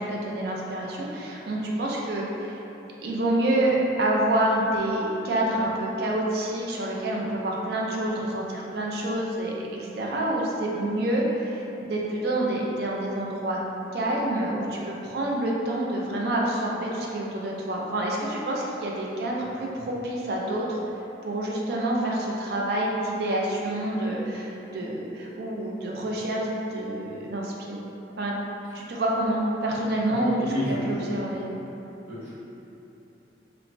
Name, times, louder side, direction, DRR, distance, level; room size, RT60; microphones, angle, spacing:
voice 1, 0.0-2.6 3.0-9.5 9.8-13.6 13.9-20.8 21.2-27.8 28.2-28.4 28.7-30.5 30.9-31.5, right 1 dB, 55° right, -3 dB, 0.4 m, -27 dB
voice 2, 30.1-31.1 32.1-32.3, equal, 10° right, -15 dB, 1.0 m, -31 dB
3.0 x 2.1 x 2.5 m, 3.0 s
head